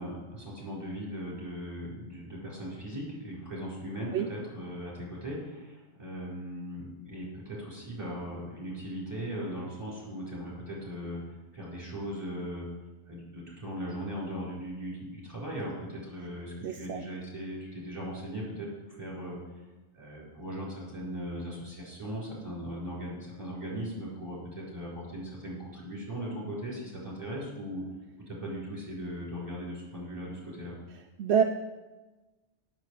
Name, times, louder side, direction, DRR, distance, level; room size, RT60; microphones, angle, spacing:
voice 1, 0.0-11.2 11.5-12.7 13.1-19.4 19.9-27.8 28.3-30.7, equal, 25° right, -5 dB, 4.9 m, -38 dB
voice 2, 16.6-17.0 31.2-31.4, right 7 dB, 75° right, 5 dB, 0.9 m, -26 dB
9.1 x 6.9 x 8.2 m, 1.2 s
omnidirectional pair, 1.2 m